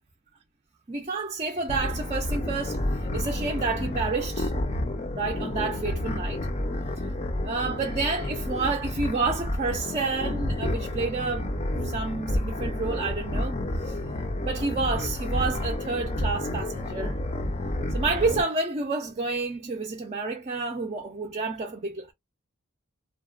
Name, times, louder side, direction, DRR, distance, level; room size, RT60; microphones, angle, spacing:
voice 1, 0.9-2.8 3.1-4.5 5.2-6.4 7.4-11.5 11.8-14.0 14.5-17.2 17.9-22.1, right 3 dB, 30° right, 0.4 m, -29 dB
sound 1, 1.7-18.4, left 1 dB, 30° left, 0.4 m, -30 dB
2.8 x 2.1 x 2.3 m
head